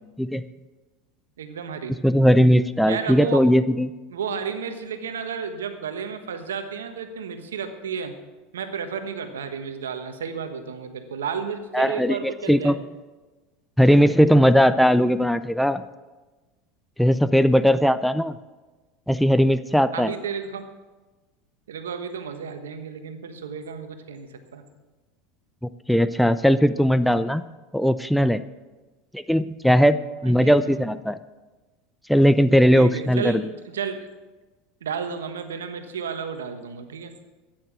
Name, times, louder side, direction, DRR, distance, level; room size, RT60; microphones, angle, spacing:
voice 1, 1.4-1.9 2.9-3.5 4.1-8.1 8.5-12.7 17.4-17.5 19.9-20.6 21.7-24.6 30.2-30.8 32.7-34.0 34.8-37.1, right 6 dB, 80° right, 8 dB, 1.2 m, -32 dB
voice 2, 2.0-3.9 11.7-12.8 13.8-15.8 17.0-18.3 19.1-20.1 25.9-27.4 27.7-28.4 29.1-31.2 32.1-33.4, equal, ahead, 13 dB, 0.5 m, -18 dB
13.5 x 9.3 x 6.2 m, 1.2 s
hypercardioid pair, 85°, 0 cm